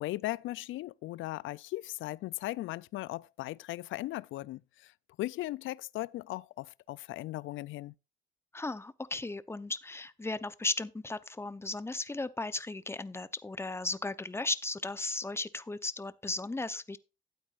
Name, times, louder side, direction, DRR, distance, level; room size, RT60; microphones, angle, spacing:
voice 1, 0.0-4.9 5.2-7.9, left 17 dB, 80° left, 0.4 m, -38 dB
voice 2, 8.5-17.0, left 2 dB, 10° left, 0.7 m, -36 dB
12.5 x 8.7 x 2.5 m
cardioid pair, 90°, 20 cm